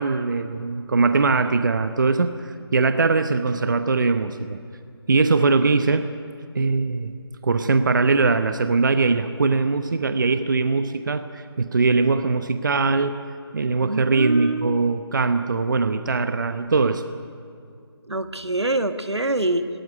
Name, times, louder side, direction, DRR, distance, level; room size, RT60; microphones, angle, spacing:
voice 1, 0.0-4.6 5.1-6.1 6.5-7.1 7.4-13.2 13.5-17.0, right 4 dB, 50° right, 10 dB, 0.9 m, -21 dB
voice 2, 13.8-14.7 18.1-19.7, right 1 dB, 85° right, 8 dB, 1.7 m, -25 dB
18.5 x 18.0 x 9.4 m, 2.4 s
figure-of-eight pair, 155°, 14 cm